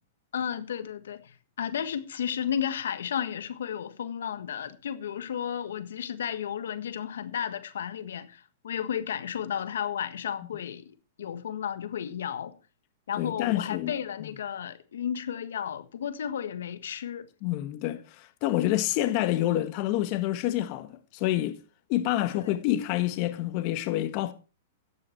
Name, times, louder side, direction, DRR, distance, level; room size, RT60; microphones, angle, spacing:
voice 1, 0.3-10.9 11.2-12.6 13.1-17.3 22.4-22.6, left 9 dB, 85° left, 1.5 m, -33 dB
voice 2, 13.2-13.9 14.2-14.3 17.4-21.6 21.9-24.3, left 14 dB, 40° left, 1.3 m, -28 dB
13.5 x 9.9 x 4.5 m
hypercardioid pair, 145°, 0 cm